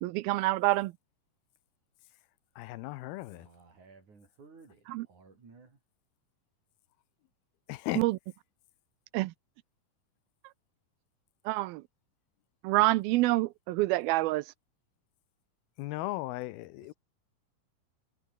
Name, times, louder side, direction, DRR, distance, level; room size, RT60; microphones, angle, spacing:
voice 1, 0.0-0.9 4.9-5.1 7.9-8.2 9.1-9.3 11.5-11.8 12.6-14.4, right 19 dB, 80° right, 2.5 m, -27 dB
voice 2, 2.6-3.5 7.7-8.0 15.8-16.9, left 18 dB, 85° left, 2.6 m, -36 dB
voice 3, 3.3-5.8 16.8-16.9, right 4 dB, 50° right, 7.4 m, -56 dB
omnidirectional pair, 4.4 m